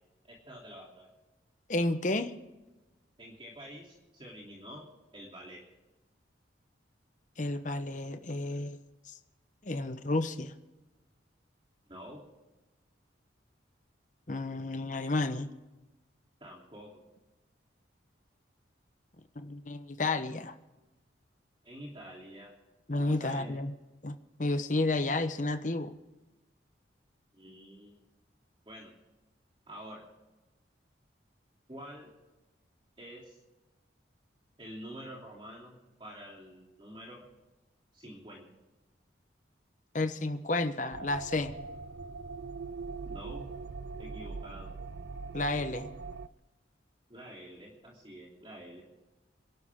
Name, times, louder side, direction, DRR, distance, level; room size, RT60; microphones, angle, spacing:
voice 1, 0.2-1.1 3.2-4.8 5.1-5.6 11.9-12.2 16.4-17.0 21.6-22.5 23.0-23.6 27.3-28.0 28.6-28.9 29.7-30.0 31.7-32.1 33.0-33.4 34.6-37.3 37.9-38.5 43.0-43.5 44.0-44.7 47.1-48.8, equal, 25° right, -2 dB, 3.0 m, -47 dB
voice 2, 1.7-2.3 7.4-8.8 9.1-9.2 9.6-10.5 14.3-15.5 19.3-20.5 22.9-23.7 24.0-24.1 24.4-25.9 39.9-41.5 45.3-45.9, left 2 dB, 40° left, 8 dB, 1.0 m, -31 dB
sound 1, 40.9-46.3, right 4 dB, 60° right, 0.5 m, -41 dB
28.0 x 12.0 x 3.7 m, 1.1 s
head